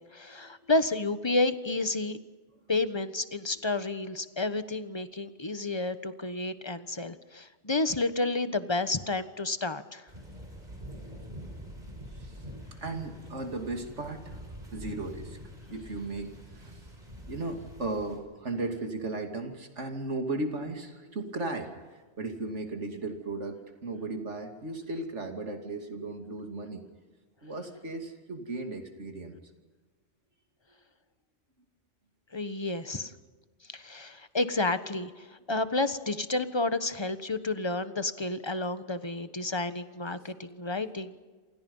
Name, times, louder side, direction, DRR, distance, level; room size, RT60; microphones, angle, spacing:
voice 1, 0.0-2.2 2.7-10.1 32.3-33.1 33.7-41.2, left 2 dB, 25° left, 11 dB, 1.2 m, -30 dB
sound 1, 10.1-18.2, equal, 40° right, 5.5 m, -45 dB
voice 2, 12.1-12.4 12.8-14.4 14.7-15.4 15.7-16.8 17.3-26.8 27.4-29.3, right 2 dB, 75° right, 5 dB, 3.0 m, -36 dB
28.0 x 27.5 x 5.6 m, 1.3 s
omnidirectional pair, 1.2 m